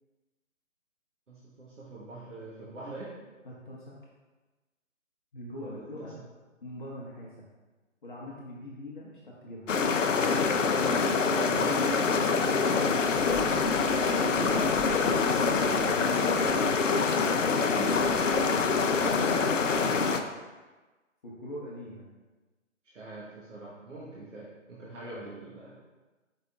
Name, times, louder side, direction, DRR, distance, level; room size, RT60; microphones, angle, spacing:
voice 1, 1.3-3.1 5.6-6.1 10.6-11.0 11.3-12.7 14.2-14.8 17.8-18.0 22.8-25.8, right 2 dB, 65° right, -6 dB, 1.1 m, -41 dB
voice 2, 3.4-4.0 5.3-6.1 6.6-7.5 8.0-9.7 12.6-12.9 14.8-18.3 18.9-20.3 21.2-22.1 25.0-25.3, left 1 dB, 40° left, -5 dB, 0.8 m, -41 dB
sound 1, 9.7-20.2, left 5 dB, 70° left, 0.5 m, -25 dB
5.0 x 4.6 x 2.3 m, 1.2 s
figure-of-eight pair, 150°, 39 cm